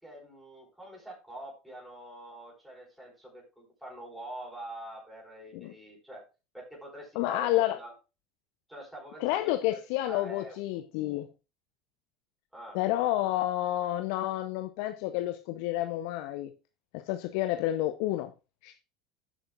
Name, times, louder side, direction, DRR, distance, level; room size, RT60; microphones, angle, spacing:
voice 1, 0.0-6.2 6.5-7.9 8.7-10.6 12.5-12.8, right 1 dB, 5° right, 4.9 m, -45 dB
voice 2, 7.1-7.8 9.2-11.3 12.7-16.5 16.9-18.3 18.6-18.8, left 14 dB, 60° left, 0.7 m, -30 dB
15.5 x 6.4 x 2.4 m
figure-of-eight pair, 75°, 0 cm